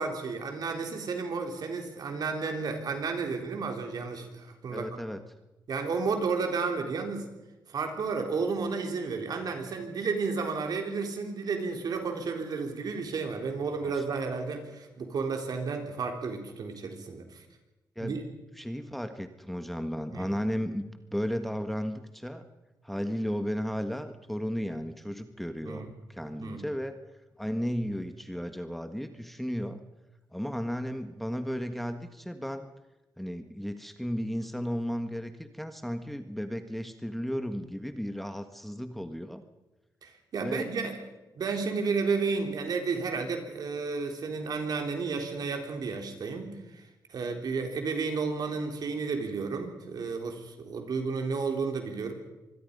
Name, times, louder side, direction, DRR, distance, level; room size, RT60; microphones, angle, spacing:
voice 1, 0.0-5.0 5.7-7.3 7.7-17.4 18.0-18.2 20.1-20.3 25.6-25.9 26.4-26.6 40.0-41.0 41.4-46.8 47.1-52.1, right 4 dB, 65° right, 4 dB, 3.9 m, -32 dB
voice 2, 4.7-5.2 13.8-14.2 17.9-18.2 18.6-20.8 21.1-22.4 22.8-26.9 27.4-29.8 30.3-32.7 33.2-39.4 40.4-40.7, equal, ahead, 8 dB, 1.5 m, -34 dB
25.5 x 21.5 x 5.4 m, 1.0 s
cardioid pair, 80°, 7 cm